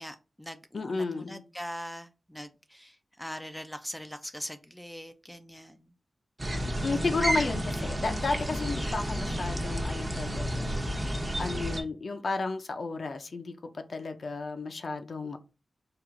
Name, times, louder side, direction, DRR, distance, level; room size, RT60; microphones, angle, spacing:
voice 1, 0.0-5.9, equal, 5° left, 8 dB, 0.4 m, -42 dB
voice 2, 0.7-1.4 6.8-15.4, left 3 dB, 60° left, 6 dB, 0.5 m, -33 dB
sound 1, 6.4-11.8, equal, 20° right, 0.8 m, -31 dB
4.7 x 2.5 x 3.6 m, 0.30 s
wide cardioid pair, 115°, 0 cm